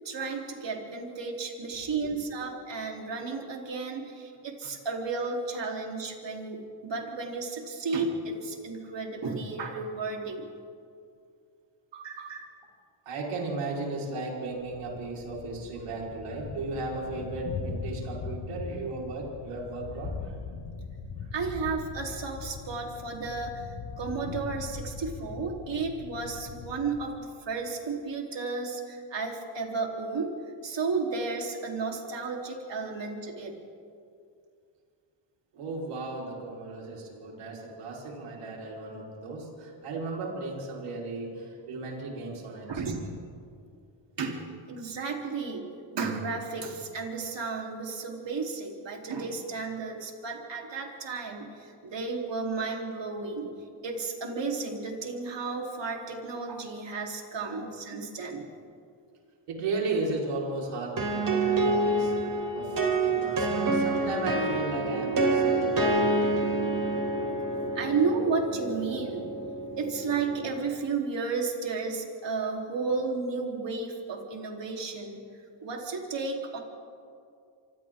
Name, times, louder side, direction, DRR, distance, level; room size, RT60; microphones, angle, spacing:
voice 1, 0.0-10.5 11.9-12.5 21.3-30.4 30.6-33.6 42.7-43.1 44.2-45.6 45.9-53.5 53.8-58.5 67.7-69.3 69.8-75.2 75.6-76.6, right 4 dB, 60° right, 0 dB, 3.9 m, -33 dB
voice 2, 13.0-20.3 35.5-42.8 57.5-57.7 59.5-66.5, right 3 dB, 90° right, -3 dB, 5.0 m, -35 dB
Thunder, 14.6-27.2, left 5 dB, 80° left, 2.0 m, -40 dB
sound 1, 61.0-70.6, right 2 dB, 40° right, 3.9 m, -27 dB
27.0 x 26.5 x 3.8 m, 2.4 s
cardioid pair, 85°, 50 cm